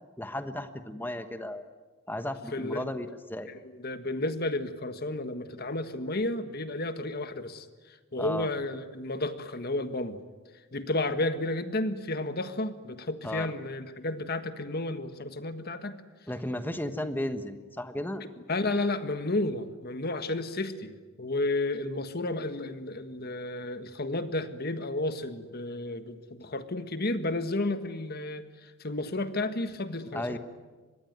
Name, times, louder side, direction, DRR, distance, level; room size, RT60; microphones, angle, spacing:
voice 1, 0.2-1.6 2.1-3.5 8.2-8.5 13.2-13.5 16.3-18.2 30.1-30.4, left 1 dB, 10° left, 9 dB, 1.3 m, -34 dB
voice 2, 2.5-3.0 3.4-7.7 8.1-10.2 10.7-16.0 18.2-30.4, left 2 dB, 50° left, 10 dB, 1.6 m, -32 dB
25.0 x 21.5 x 9.5 m, 1.3 s
head